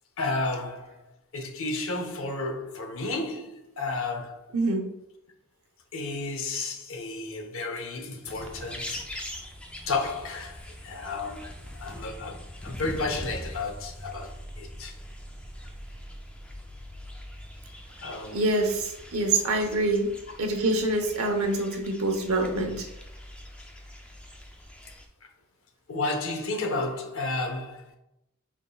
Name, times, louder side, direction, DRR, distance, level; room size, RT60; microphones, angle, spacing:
voice 1, 0.2-1.0 1.3-4.5 5.9-9.0 9.9-11.5 11.8-14.3 14.6-14.9 18.0-18.5 25.9-27.9, left 3 dB, 70° left, 0.7 m, -32 dB
voice 2, 4.5-4.8 18.3-20.1 20.4-22.9, right 2 dB, 80° right, 0.8 m, -25 dB
arguing birds, 8.3-25.1, left 1 dB, 5° left, 0.3 m, -42 dB
5.1 x 3.6 x 2.3 m
head